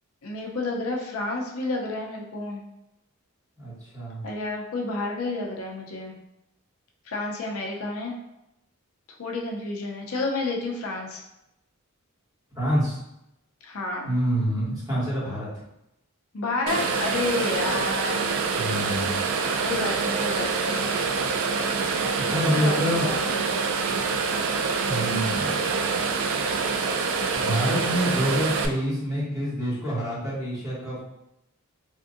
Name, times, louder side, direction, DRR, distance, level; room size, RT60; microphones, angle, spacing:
voice 1, 0.2-2.6 4.2-6.1 7.1-8.2 9.2-11.2 13.6-14.1 16.3-18.3 19.6-20.8 22.4-23.4, left 2 dB, 75° left, 0 dB, 0.5 m, -30 dB
voice 2, 3.6-4.2 12.5-13.0 14.0-15.6 18.5-19.2 22.2-23.1 24.9-25.6 27.3-31.0, equal, 15° right, -10 dB, 1.4 m, -27 dB
sound 1, 16.7-28.7, right 4 dB, 65° right, 0.3 m, -26 dB
3.5 x 2.6 x 2.5 m, 0.86 s
head